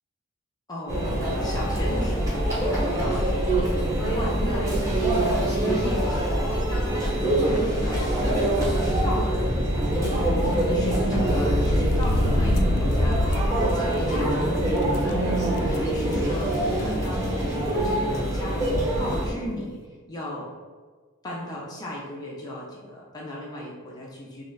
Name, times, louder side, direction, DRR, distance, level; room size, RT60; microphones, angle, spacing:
voice 1, 0.7-13.5 13.7-19.8 20.1-20.5 21.2-24.4, left 1 dB, 15° left, -4 dB, 0.4 m, -36 dB
Conversation / Chatter / Crowd, 0.9-19.3, right 1 dB, 15° right, 0.8 m, -24 dB
sound 1, 10.6-17.3 17.7-17.8 18.9-19.0 19.2-19.5, left 1 dB, 90° left, 0.4 m, -29 dB
2.9 x 2.4 x 3.9 m, 1.4 s
head